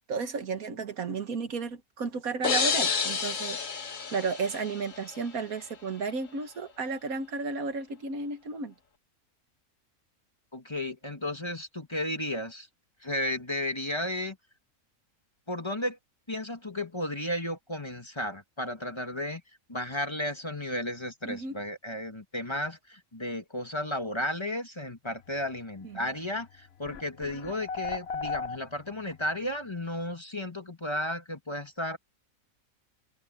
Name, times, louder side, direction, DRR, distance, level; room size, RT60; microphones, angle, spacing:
voice 1, 0.0-3.9 4.1-8.7 21.3-21.6 25.8-26.1, right 4 dB, 90° right, 2.0 m, -33 dB
sound 1, 2.4-5.2, left 6 dB, 65° left, 1.8 m, -30 dB
voice 2, 10.5-12.7 13.0-14.4 15.5-16.0 16.3-19.4 19.7-32.0, left 1 dB, 20° left, 1.7 m, -33 dB
sound 2, 26.3-26.4 26.8-29.1, left 5 dB, 50° left, 1.0 m, -35 dB
omnidirectional pair, 1.5 m